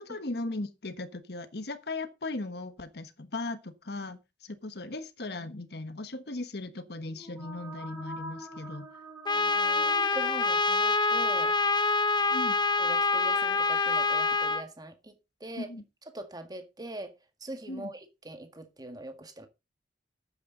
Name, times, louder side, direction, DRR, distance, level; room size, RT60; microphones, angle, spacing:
voice 1, 0.0-8.9 12.3-12.6 15.6-15.8 17.7-17.9, left 2 dB, 65° left, 1.3 m, -37 dB
sound 1, 7.1-10.9, right 1 dB, 5° right, 4.6 m, -45 dB
Trumpet, 9.2-14.6, left 4 dB, 25° left, 0.8 m, -26 dB
voice 2, 9.3-11.5 12.8-15.7 16.1-17.1 17.4-19.5, right 1 dB, 25° right, 1.8 m, -42 dB
12.0 x 8.8 x 3.9 m
head